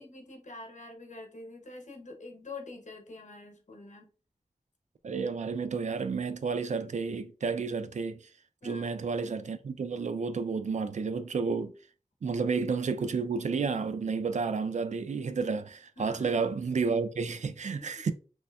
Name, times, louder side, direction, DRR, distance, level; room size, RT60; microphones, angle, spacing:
voice 1, 0.0-4.1 8.6-9.0 16.0-16.3 17.8-17.9, left 3 dB, 75° left, 0.8 m, -46 dB
voice 2, 5.0-8.2 8.6-11.7 12.2-18.1, right 5 dB, 70° right, 0.4 m, -31 dB
3.1 x 2.9 x 2.2 m
wide cardioid pair, 65°, 13 cm